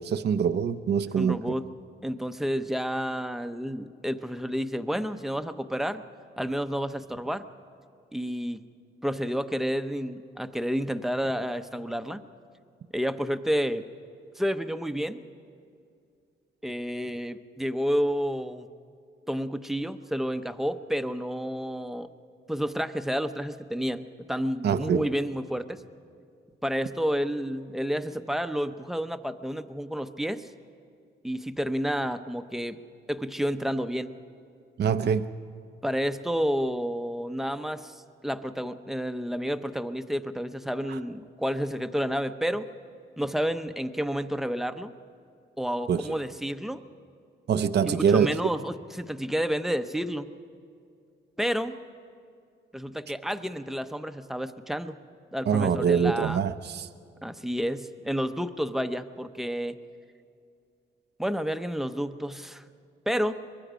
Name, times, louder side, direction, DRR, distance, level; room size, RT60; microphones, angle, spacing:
voice 1, 0.0-1.4 24.6-25.0 34.8-35.3 40.9-41.0 45.9-46.1 47.5-48.3 55.5-56.9, right 7 dB, 55° right, 10 dB, 0.7 m, -24 dB
voice 2, 1.1-1.6 2.0-6.0 6.4-7.5 8.1-8.6 9.0-12.2 12.9-13.8 14.4-15.2 16.6-18.7 19.3-22.1 22.5-24.0 24.3-25.8 26.6-30.5 31.2-32.8 33.1-34.1 35.8-42.7 43.2-44.9 45.6-46.8 47.8-50.3 51.4-51.8 52.7-55.0 55.3-56.4 57.2-59.8 61.2-62.6 63.1-63.3, equal, ahead, 9 dB, 0.8 m, -30 dB
23.5 x 22.0 x 5.1 m, 2.4 s
cardioid pair, 95°, 20 cm